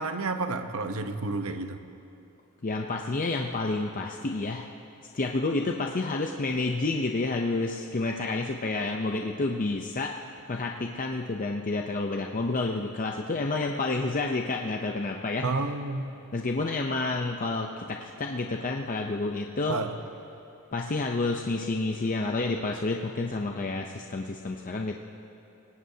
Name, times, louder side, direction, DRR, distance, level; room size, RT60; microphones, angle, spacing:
voice 1, 0.0-1.8 15.4-16.1 19.7-19.9, right 3 dB, 70° right, 7 dB, 1.0 m, -30 dB
voice 2, 2.6-4.7 5.1-10.1 10.5-15.5 16.3-19.8 20.7-25.0, left 3 dB, 40° left, 2 dB, 0.6 m, -29 dB
25.0 x 18.5 x 2.8 m, 2.9 s
head